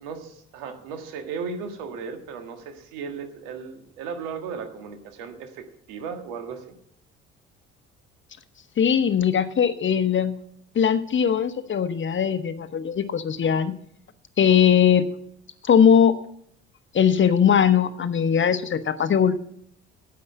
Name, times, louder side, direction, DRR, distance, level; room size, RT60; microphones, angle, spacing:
voice 1, 0.0-6.8, right 5 dB, 70° right, 6 dB, 1.7 m, -36 dB
voice 2, 8.8-10.3 10.7-13.7 14.4-15.0 15.6-16.1 16.9-19.3, left 8 dB, 35° left, 12 dB, 0.9 m, -20 dB
9.7 x 8.6 x 7.7 m, 0.69 s
hypercardioid pair, 50°, 33 cm